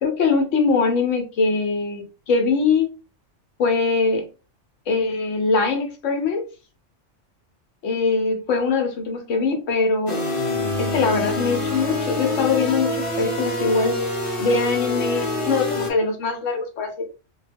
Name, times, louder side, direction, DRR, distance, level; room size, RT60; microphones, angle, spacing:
voice 1, 0.0-2.9 3.6-4.3 4.9-6.4 7.8-10.2 10.8-14.0 14.4-17.0, left 4 dB, 80° left, 4 dB, 1.1 m, -22 dB
sound 1, 10.1-15.9, left 2 dB, 35° left, 0.6 m, -26 dB
2.3 x 2.2 x 3.3 m, 0.33 s
omnidirectional pair, 1.3 m